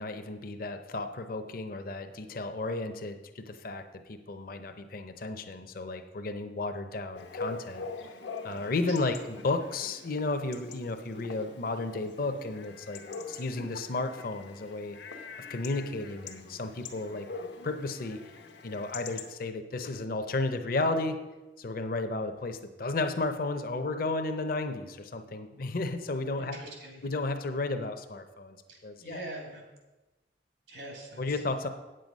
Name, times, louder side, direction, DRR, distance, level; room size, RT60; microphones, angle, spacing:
voice 1, 0.0-8.1 8.4-9.2 9.4-13.0 13.3-15.0 15.5-17.3 17.6-18.3 18.6-21.2 21.6-26.6 27.0-28.6 28.8-29.2 31.2-31.7, left 2 dB, 55° left, 7 dB, 0.7 m, -33 dB
Chatter / Bark / Livestock farm animals working animals, 7.1-19.3, left 4 dB, 85° left, 1.0 m, -44 dB
voice 2, 26.4-27.1 28.7-29.6 30.7-31.7, right 2 dB, 85° right, 1 dB, 2.7 m, -44 dB
8.7 x 7.7 x 5.3 m, 1.1 s
head